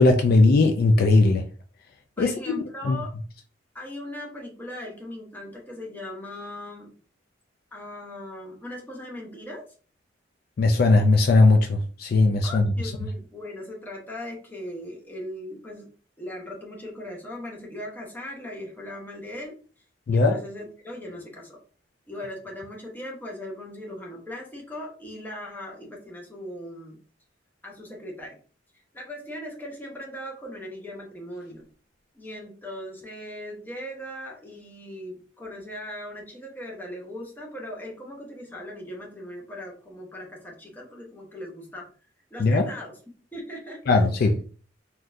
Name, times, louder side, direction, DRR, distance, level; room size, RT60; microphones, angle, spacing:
voice 1, 0.0-1.4 2.2-2.3 2.8-3.0 10.6-12.7 20.1-20.4 42.4-42.7 43.9-44.4, left 3 dB, 55° left, 0.3 m, -18 dB
voice 2, 2.2-3.1 3.7-6.9 7.7-9.6 12.4-15.9 16.2-19.6 20.1-21.6 22.1-27.0 27.6-28.4 28.9-31.7 32.1-41.9 42.3-43.0 43.3-43.8, left 1 dB, 10° left, 0.8 m, -39 dB
3.7 x 2.3 x 2.6 m
head